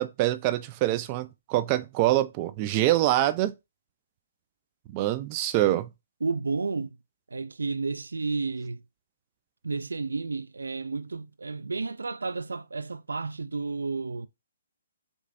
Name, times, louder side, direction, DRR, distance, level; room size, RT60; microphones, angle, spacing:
voice 1, 0.0-3.5 4.9-5.9, right 15 dB, 30° right, 0.5 m, -25 dB
voice 2, 6.2-7.0 7.3-8.8 9.6-14.3, right 4 dB, 85° right, 0.4 m, -32 dB
5.3 x 3.1 x 2.5 m
hypercardioid pair, 140°, 0 cm